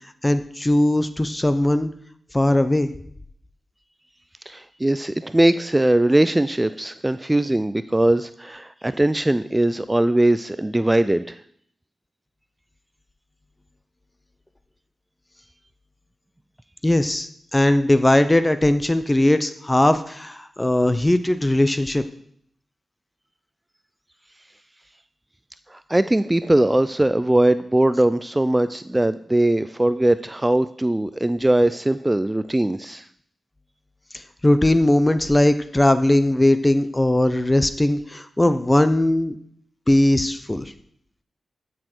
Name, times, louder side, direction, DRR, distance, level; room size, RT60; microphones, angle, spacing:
voice 1, 0.2-1.9 2.3-2.9 16.8-22.0 34.4-39.4 39.9-40.6, left 1 dB, 20° left, 11 dB, 0.7 m, -19 dB
voice 2, 4.5-11.4 25.7-33.1, right 1 dB, 20° right, 13 dB, 0.4 m, -20 dB
14.0 x 6.4 x 4.5 m, 0.66 s
cardioid pair, 45°, 0 cm